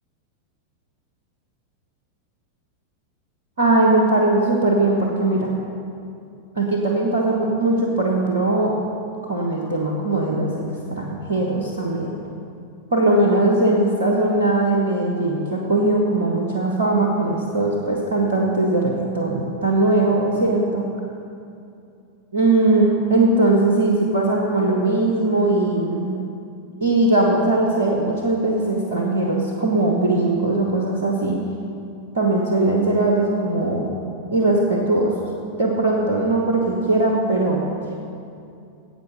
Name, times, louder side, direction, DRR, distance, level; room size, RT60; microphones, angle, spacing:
voice 1, 3.6-5.5 6.5-8.7 9.2-12.2 12.9-20.9 22.3-26.1 26.8-31.4 32.1-33.9 34.3-35.1 35.6-37.6, right 2 dB, 65° right, -1 dB, 1.3 m, -20 dB
11.0 x 8.0 x 6.4 m, 2.6 s
figure-of-eight pair, 90°, 0 cm